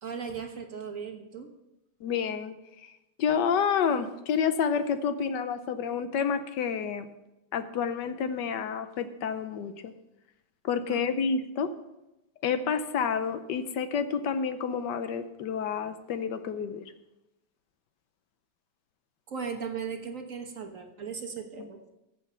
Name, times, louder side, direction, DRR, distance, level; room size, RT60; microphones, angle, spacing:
voice 1, 0.0-1.5 10.9-11.0 19.3-21.9, right 6 dB, 50° right, 5 dB, 1.4 m, -37 dB
voice 2, 2.0-2.5 2.8-2.9 3.2-7.1 7.5-9.9 10.6-11.7 12.4-16.9 21.6-21.7, left 6 dB, 75° left, 10 dB, 1.4 m, -29 dB
14.5 x 7.2 x 5.6 m, 0.94 s
omnidirectional pair, 2.0 m